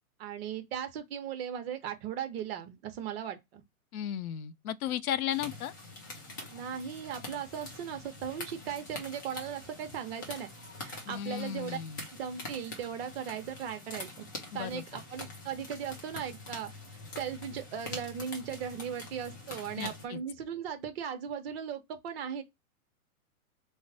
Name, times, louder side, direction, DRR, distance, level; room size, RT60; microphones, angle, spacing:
voice 1, 0.2-3.6 6.5-10.5 10.8-11.8 12.1-14.3 14.5-16.7 17.1-22.4, right 8 dB, 45° right, 0.8 m, -38 dB
voice 2, 3.9-5.7 11.1-12.1 14.5-14.8 19.8-20.2, left 10 dB, 75° left, 0.6 m, -35 dB
sound 1, 5.3-20.0, left 2 dB, 15° left, 0.3 m, -45 dB
3.2 x 2.1 x 4.0 m
hypercardioid pair, 135°, 43 cm